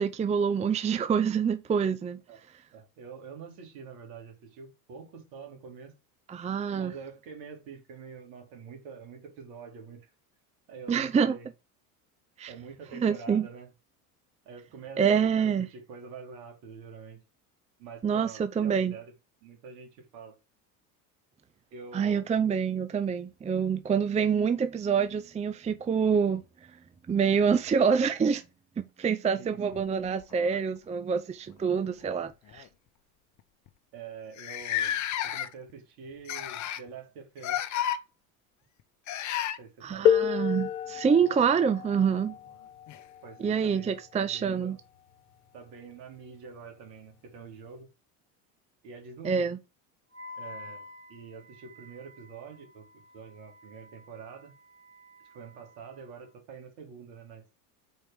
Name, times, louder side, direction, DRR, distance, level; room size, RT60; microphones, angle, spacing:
voice 1, 0.0-2.2 6.3-6.9 10.9-11.4 12.4-12.5 12.9-13.5 15.0-15.7 18.0-18.9 21.9-26.4 27.1-28.4 28.8-32.6 39.8-42.4 43.4-44.8 49.2-49.6, right 6 dB, 15° right, 0.6 m, -26 dB
voice 2, 2.7-6.0 6.7-10.1 10.7-11.5 12.5-13.7 14.4-17.2 17.8-19.1 19.4-20.4 21.7-22.3 29.4-29.9 33.9-35.0 35.2-37.6 39.6-40.1 43.2-44.8 45.5-47.9 48.8-49.5 50.4-54.5 55.2-57.4, right 5 dB, 70° right, 3.0 m, -46 dB
sound 1, 29.7-30.9 31.9-32.1 32.5-32.7 33.4-33.5 33.7-33.8 34.4-35.7 36.3-36.9 37.4-38.0 39.1-39.6 41.7-41.8 42.9-43.0, left 11 dB, 40° left, 0.7 m, -32 dB
sound 2, 40.1-45.5 46.5-46.6 47.5-47.7, left 9 dB, 75° left, 1.3 m, -30 dB
Wind instrument woodwind instrument, 50.1-56.3, left 2 dB, 35° right, 2.0 m, -50 dB
4.6 x 4.4 x 5.2 m
hypercardioid pair, 85°, 45 cm